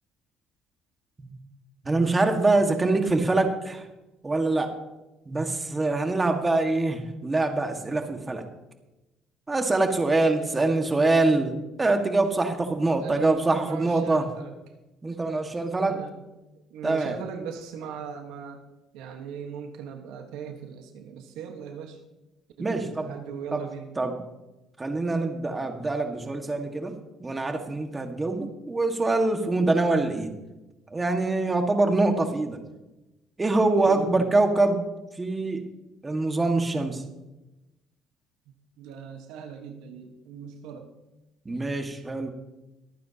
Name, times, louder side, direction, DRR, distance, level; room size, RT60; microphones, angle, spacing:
voice 1, 1.8-3.9 4.2-4.8 5.2-8.4 9.5-14.3 15.0-16.0 16.8-17.2 22.6-23.1 23.5-23.6 24.0-24.2 24.8-30.3 30.9-32.6 33.4-34.8 35.1-35.7 36.0-37.0 41.4-42.3, right 2 dB, 20° right, 5 dB, 1.7 m, -24 dB
voice 2, 13.0-14.5 15.8-16.2 16.7-18.6 18.9-22.0 22.6-23.9 33.8-34.3 38.8-40.9, right 7 dB, 80° right, 5 dB, 1.3 m, -39 dB
23.0 x 9.2 x 2.9 m, 1.0 s
supercardioid pair, 90°, 0 cm